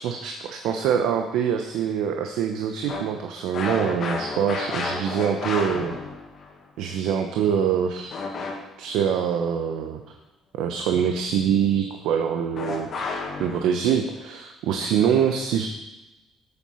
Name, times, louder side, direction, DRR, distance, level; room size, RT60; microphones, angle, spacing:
voice 1, 0.0-6.0 6.8-8.1 8.8-10.2 10.5-12.9 13.4-15.7, right 8 dB, 80° right, 5 dB, 1.1 m, -24 dB
sound 1, 2.9-6.5 8.1-8.9 12.6-13.7, left 3 dB, 35° left, 2.1 m, -31 dB
13.0 x 8.1 x 5.7 m, 1.0 s
cardioid pair, 170°, 0 cm